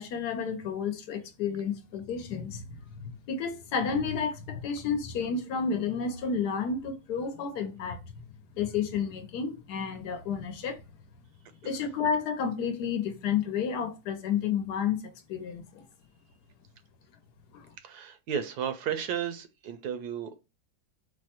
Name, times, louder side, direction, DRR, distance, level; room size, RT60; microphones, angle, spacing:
voice 1, 0.0-8.0 8.6-10.8 11.6-15.0 15.3-15.8 17.5-17.7, left 6 dB, 70° left, 1.3 m, -31 dB
voice 2, 17.8-20.4, right 8 dB, 70° right, 1.1 m, -34 dB
4.7 x 2.2 x 4.2 m
omnidirectional pair, 1.8 m